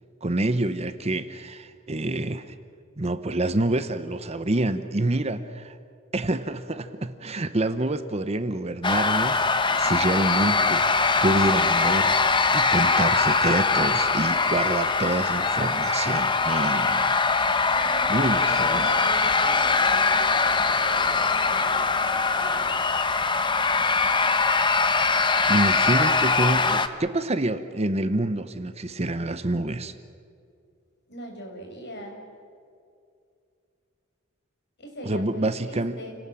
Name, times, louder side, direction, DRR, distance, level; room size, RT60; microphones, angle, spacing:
voice 1, 0.2-2.5 3.0-5.8 6.1-9.4 9.7-17.1 17.6-18.9 25.5-29.9 35.0-36.0, right 2 dB, 30° right, 11 dB, 0.9 m, -27 dB
sound 1, 8.8-26.9, left 4 dB, 25° left, 1.0 m, -22 dB
voice 2, 17.7-22.8 31.1-32.2 34.8-36.2, equal, 55° left, 2 dB, 5.5 m, -40 dB
30.0 x 18.5 x 7.7 m, 2.3 s
head